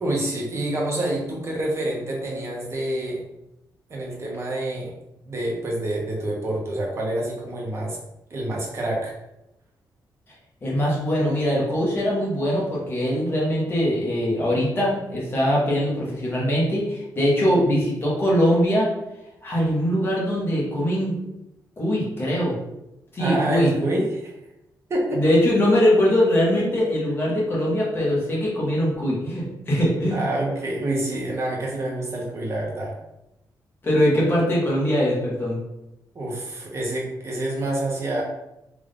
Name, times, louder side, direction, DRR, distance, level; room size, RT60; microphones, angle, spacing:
voice 1, 0.0-3.2 3.9-4.9 5.3-8.0 8.3-9.1 23.2-24.3 24.9-25.2 26.6-26.7 30.1-32.9 36.1-38.2, right 1 dB, 35° right, -2 dB, 1.0 m, -27 dB
voice 2, 10.6-18.9 19.4-21.1 21.8-22.5 23.1-23.7 25.1-30.3 33.8-35.6, equal, 30° left, -5 dB, 1.4 m, -22 dB
3.6 x 2.6 x 3.6 m, 0.88 s
wide cardioid pair, 140°, 8 cm